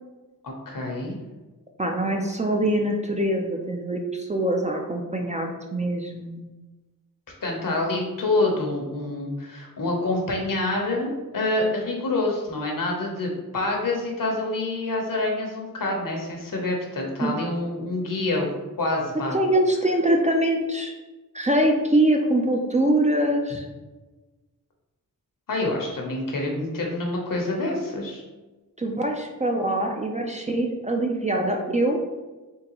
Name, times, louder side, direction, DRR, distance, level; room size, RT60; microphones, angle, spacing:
voice 1, 0.4-1.2 7.4-18.5 18.8-19.4 25.5-28.2, left 2 dB, 70° left, 0 dB, 0.9 m, -27 dB
voice 2, 1.8-6.4 17.2-17.3 19.3-20.9 21.3-23.7 28.8-32.0, right 1 dB, 20° right, 2 dB, 0.4 m, -23 dB
3.7 x 3.2 x 3.0 m, 1.2 s
wide cardioid pair, 105°, 34 cm